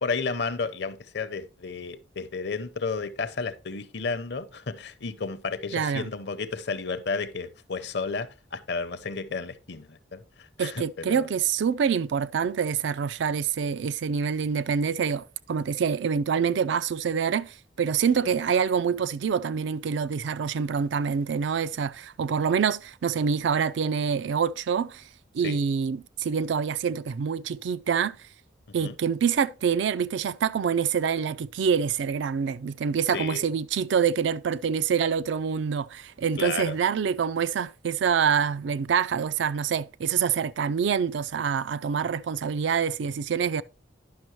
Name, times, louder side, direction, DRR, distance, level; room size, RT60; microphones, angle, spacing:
voice 1, 0.0-11.3 25.4-25.6 28.8-29.0 33.1-33.4 36.4-36.8, left 4 dB, 60° left, 0.6 m, -32 dB
voice 2, 5.7-6.1 10.6-25.0 25.3-28.2 28.7-43.6, right 6 dB, 65° right, 0.4 m, -26 dB
10.5 x 6.1 x 3.1 m
head